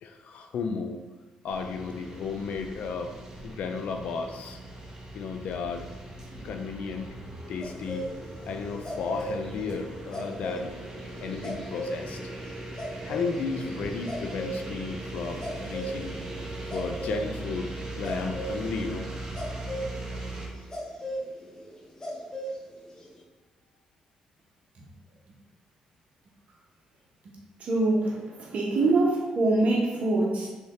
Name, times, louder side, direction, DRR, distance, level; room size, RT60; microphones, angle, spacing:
voice 1, 0.0-1.0 1.4-3.1 3.4-4.6 5.1-5.9 6.4-7.1 7.5-8.1 8.5-10.7 11.2-12.2 13.0-16.2 16.7-19.1, left 5 dB, 70° left, 5 dB, 0.4 m, -34 dB
sound 1, 1.5-20.5, right 2 dB, 30° right, 0.9 m, -39 dB
sound 2, 7.6-17.3 18.0-22.6 22.8-23.1, equal, 25° left, 0.9 m, -37 dB
voice 2, 27.6-30.5, right 2 dB, 65° right, -1 dB, 0.9 m, -24 dB
3.3 x 3.1 x 3.1 m, 1.2 s
supercardioid pair, 55°, 2 cm